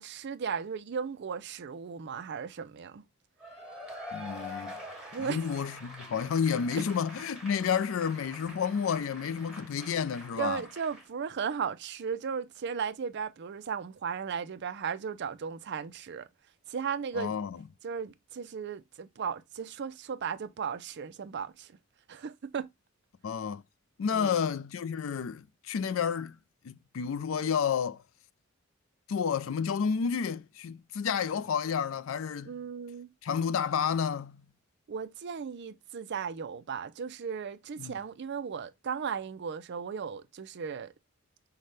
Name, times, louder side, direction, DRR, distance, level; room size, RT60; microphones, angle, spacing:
voice 1, 0.0-3.0 5.1-5.4 10.4-16.3 16.7-17.4 17.8-21.7 22.1-22.7 24.1-24.4 32.4-33.1 34.9-40.9, right 6 dB, 55° right, 0.4 m, -36 dB
Cheering / Applause / Crowd, 3.4-11.1, left 1 dB, 5° right, 1.4 m, -45 dB
voice 2, 4.1-4.7 5.2-10.6 17.1-17.6 23.2-23.6 24.0-26.4 26.6-28.0 29.1-32.5 33.2-34.4 37.8-38.0, left 7 dB, 70° left, 0.4 m, -30 dB
5.6 x 2.2 x 3.2 m
head